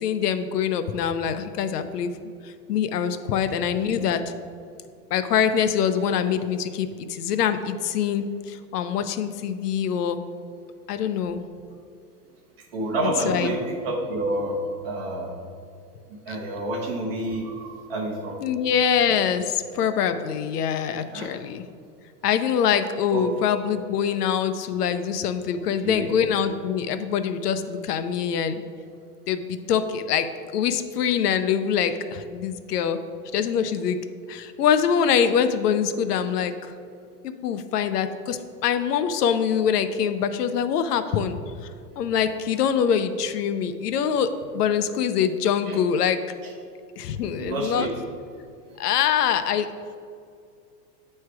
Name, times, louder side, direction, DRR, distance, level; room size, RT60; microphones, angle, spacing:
voice 1, 0.0-2.1 2.7-4.2 5.1-10.2 10.9-11.4 13.0-13.5 16.3-16.4 18.4-21.6 22.2-28.5 29.3-33.0 33.3-34.0 34.3-36.5 37.2-41.4 42.0-46.2 47.0-47.9 48.8-49.7, left 8 dB, 70° left, 10 dB, 0.6 m, -24 dB
voice 2, 12.7-14.6 14.8-15.4 16.3-18.4 21.1-21.4 23.1-23.2 25.6-26.1 45.7-45.8 47.4-47.9, right 2 dB, 40° right, 1 dB, 0.9 m, -28 dB
8.4 x 3.3 x 4.6 m, 2.3 s
supercardioid pair, 175°, 49 cm